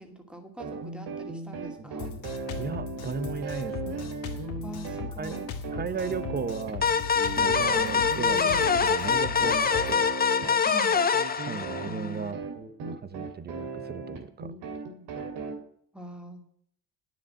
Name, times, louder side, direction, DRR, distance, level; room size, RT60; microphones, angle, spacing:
voice 1, 0.0-2.1 4.6-5.5 7.4-7.6 10.6-11.0 15.9-16.4, right 1 dB, ahead, 2.4 m, -43 dB
sound 1, 0.6-15.6, right 4 dB, 85° right, 2.6 m, -37 dB
Drum kit, 2.0-9.9, left 6 dB, 70° left, 2.3 m, -38 dB
voice 2, 2.6-4.2 5.2-5.4 5.7-6.9 7.4-10.1 11.5-12.4 12.8-14.5, right 5 dB, 25° right, 0.7 m, -36 dB
sound 2, 6.8-12.2, left 6 dB, 25° left, 1.0 m, -25 dB
9.6 x 7.2 x 8.5 m
cardioid pair, 115°, 39 cm